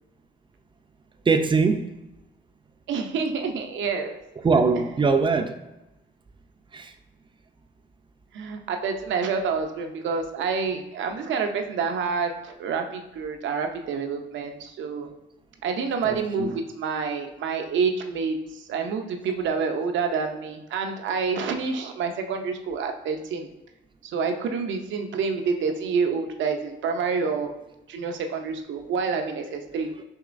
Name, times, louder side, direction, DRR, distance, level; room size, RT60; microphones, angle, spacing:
voice 1, 1.3-1.9 4.4-5.6 6.7-6.9 16.0-16.5, right 4 dB, 25° right, 6 dB, 0.5 m, -22 dB
voice 2, 2.9-4.2 8.3-15.1 15.6-23.5 24.0-27.5 27.9-29.9, right 5 dB, 75° right, 5 dB, 0.7 m, -28 dB
6.4 x 3.0 x 2.5 m, 0.96 s
cardioid pair, 90°, 20 cm